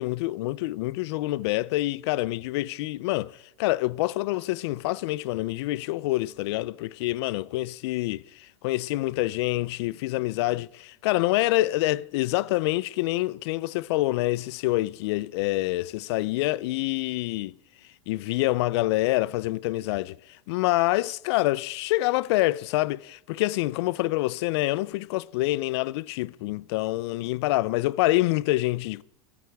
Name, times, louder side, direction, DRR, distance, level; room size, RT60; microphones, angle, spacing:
voice 1, 0.0-17.5 18.1-20.2 20.5-29.0, left 18 dB, 60° left, 0.4 m, -26 dB
26.5 x 9.5 x 3.5 m
supercardioid pair, 140°, 15 cm